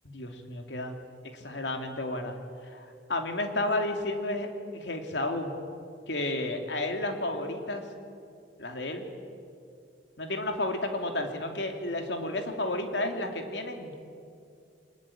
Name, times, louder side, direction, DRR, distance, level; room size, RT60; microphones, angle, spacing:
voice 1, 0.0-1.0 1.3-2.4 2.6-5.5 6.1-7.8 8.6-9.0 10.2-13.9, left 2 dB, 80° left, 4 dB, 3.0 m, -32 dB
25.0 x 20.5 x 8.8 m, 2.4 s
head